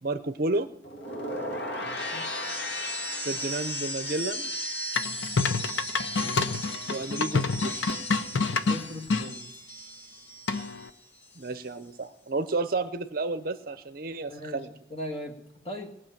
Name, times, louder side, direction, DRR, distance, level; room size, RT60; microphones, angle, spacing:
voice 1, 0.0-0.7 3.2-4.5 6.9-7.9 11.4-14.7, right 3 dB, 50° right, 11 dB, 0.6 m, -31 dB
sound 1, 0.8-10.9 11.2-11.7, left 1 dB, 60° left, 2.4 m, -36 dB
voice 2, 1.8-2.2 8.7-9.5 14.3-14.6 14.9-15.4 15.6-15.9, left 1 dB, 30° left, 3 dB, 1.8 m, -38 dB
sound 2, 5.0-9.3 10.5-10.9, left 4 dB, 80° left, 0.8 m, -27 dB
18.5 x 6.5 x 9.0 m, 0.87 s
head